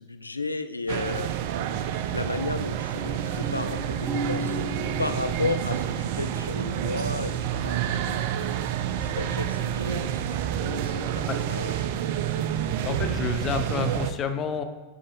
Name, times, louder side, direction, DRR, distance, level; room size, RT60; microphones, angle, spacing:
voice 1, 0.0-1.3 2.1-4.6 5.0-8.3 9.0-11.9, left 3 dB, 80° left, 9 dB, 0.4 m, -33 dB
sound 1, 0.9-14.1, right 10 dB, 50° right, 0.3 m, -29 dB
sound 2, 2.9-7.0 7.3-9.6 10.7-11.5, right 2 dB, 15° right, 0.8 m, -37 dB
voice 2, 12.8-14.6, left 6 dB, 30° left, 8 dB, 0.6 m, -29 dB
9.2 x 3.6 x 3.7 m, 1.2 s
figure-of-eight pair, 90°, 0 cm